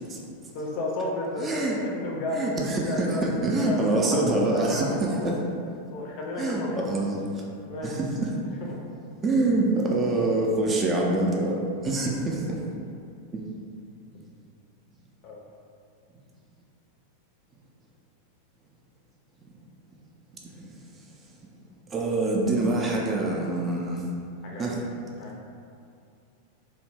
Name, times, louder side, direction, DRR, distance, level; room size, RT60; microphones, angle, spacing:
voice 1, 0.5-3.3 3.6-5.4 5.9-6.9 7.6-8.0 8.4-8.8 10.0-10.1 14.1-14.2 15.2-15.4 24.4-24.8 25.2-25.3, left 1 dB, 45° left, -2 dB, 0.5 m, -33 dB
voice 2, 1.4-1.8 2.3-5.4 6.4-7.4 7.8-8.3 9.2-12.6 13.3-13.4 20.6-20.7 21.9-24.0 24.6-24.8, right 2 dB, 20° right, -2 dB, 0.4 m, -25 dB
2.7 x 2.0 x 3.2 m, 2.4 s
figure-of-eight pair, 90°, 0 cm